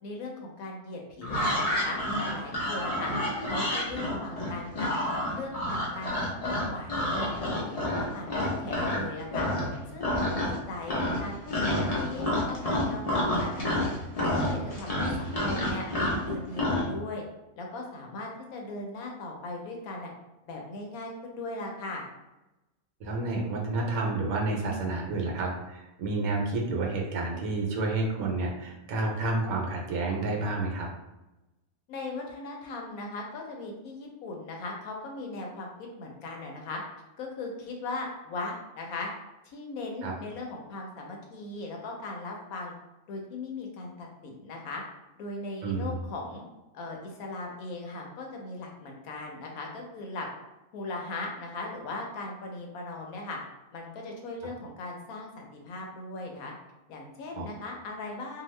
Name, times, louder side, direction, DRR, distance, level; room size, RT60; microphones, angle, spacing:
voice 1, 0.0-2.0 2.3-3.1 3.4-4.9 5.3-9.5 9.9-11.4 11.7-13.8 14.1-15.9 16.1-17.2 17.6-20.1 20.5-22.1 31.9-36.8 37.2-39.1 39.4-42.7 43.1-44.8 45.2-46.4 46.7-50.3 50.7-53.4 53.7-56.5 56.9-58.4, left 2 dB, 75° left, 0 dB, 1.1 m, -38 dB
sound 1, 1.2-9.0 9.3-9.7 10.0-10.6 10.9-16.9, left 1 dB, 55° left, 0.4 m, -29 dB
voice 2, 10.2-10.6 23.0-30.9 40.0-40.1 45.6-46.0 57.4-57.5, right 2 dB, 75° right, 0 dB, 1.1 m, -30 dB
2.8 x 2.3 x 3.1 m, 0.98 s
omnidirectional pair, 1.6 m